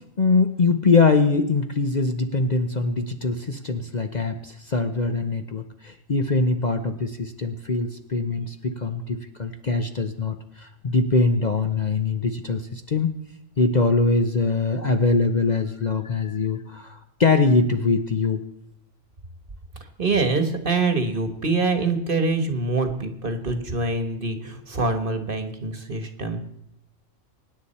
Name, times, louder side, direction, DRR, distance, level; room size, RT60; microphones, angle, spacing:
voice 1, 0.0-13.1 13.6-18.4, left 3 dB, 40° left, 6 dB, 0.9 m, -23 dB
voice 2, 20.0-26.4, right 3 dB, 45° right, 7 dB, 1.5 m, -25 dB
24.0 x 10.0 x 4.3 m, 0.79 s
omnidirectional pair, 1.4 m